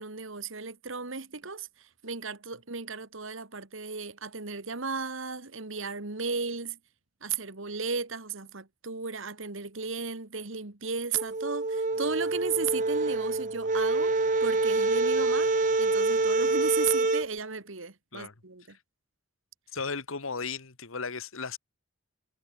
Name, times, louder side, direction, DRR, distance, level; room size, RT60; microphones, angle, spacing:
voice 1, 0.0-6.8 7.2-14.1 14.4-15.5 15.8-18.8, right 5 dB, 70° right, 1.8 m, -35 dB
sound 1, 11.1-17.3, right 3 dB, 35° right, 0.7 m, -26 dB
voice 2, 19.7-21.6, left 4 dB, 75° left, 1.6 m, -35 dB
head